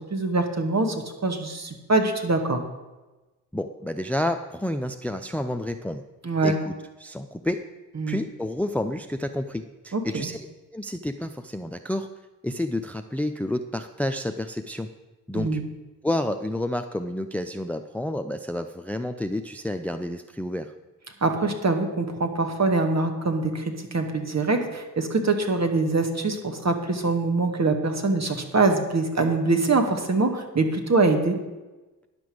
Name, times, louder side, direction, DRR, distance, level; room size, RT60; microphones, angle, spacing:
voice 1, 0.1-2.6 6.2-6.6 8.0-8.2 9.9-10.3 15.3-15.6 21.2-31.4, right 3 dB, 35° right, 5 dB, 2.1 m, -24 dB
voice 2, 3.5-6.0 6.4-6.7 7.0-7.6 8.1-10.5 10.7-12.1 12.4-14.9 15.3-15.6 16.0-20.7, left 1 dB, 5° left, 9 dB, 0.6 m, -29 dB
10.5 x 6.1 x 8.5 m, 1.1 s
hypercardioid pair, 45°, 44 cm